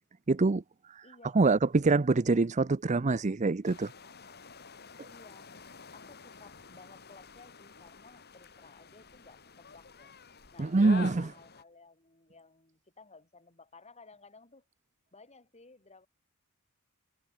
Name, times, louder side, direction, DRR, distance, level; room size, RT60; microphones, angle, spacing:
voice 1, 0.3-0.6 1.4-3.9 10.6-11.3, right 3 dB, 35° right, 0.6 m, -25 dB
voice 2, 1.0-1.5 5.1-5.5 5.9-10.2 10.5-14.7 15.1-16.1, left 3 dB, 30° left, 5.3 m, -56 dB
sound 1, 3.6-11.6, left 5 dB, 50° left, 3.8 m, -49 dB
head